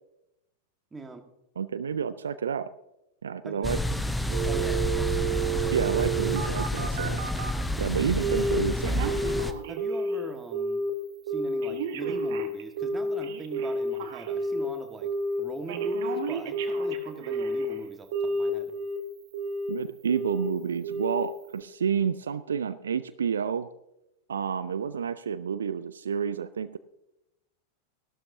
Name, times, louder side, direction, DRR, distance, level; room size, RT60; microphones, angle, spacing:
voice 1, 0.9-1.3 3.4-3.9 4.4-4.9 9.7-10.9 11.3-15.1 15.4-18.7, right 3 dB, 15° right, 6 dB, 1.5 m, -41 dB
voice 2, 1.6-2.7 3.2-3.8 5.7-7.2 7.8-9.1 19.7-23.7 24.3-26.8, right 7 dB, 70° right, 15 dB, 0.4 m, -29 dB
sound 1, 3.6-9.5, left 1 dB, 5° left, 0.7 m, -29 dB
Telephone, 4.3-7.6 8.2-8.6 8.8-10.2 10.5-10.9 11.3-14.7 15.0-15.4 15.7-17.7 18.1-19.0 19.3-19.7 20.1-20.5 20.8-21.2 21.6-21.7, right 3 dB, 55° right, 1.3 m, -30 dB
15.0 x 12.0 x 2.7 m, 0.90 s
figure-of-eight pair, 90°, 0 cm